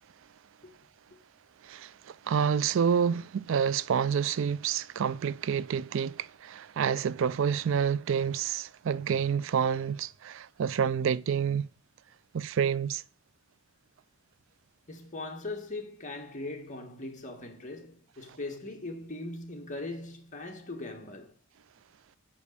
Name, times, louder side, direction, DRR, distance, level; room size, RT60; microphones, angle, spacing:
voice 1, 1.6-11.7 12.3-13.0, right 7 dB, 70° right, 0.4 m, -28 dB
voice 2, 14.9-21.4, left 2 dB, 40° left, 1.9 m, -40 dB
8.2 x 5.1 x 6.8 m
head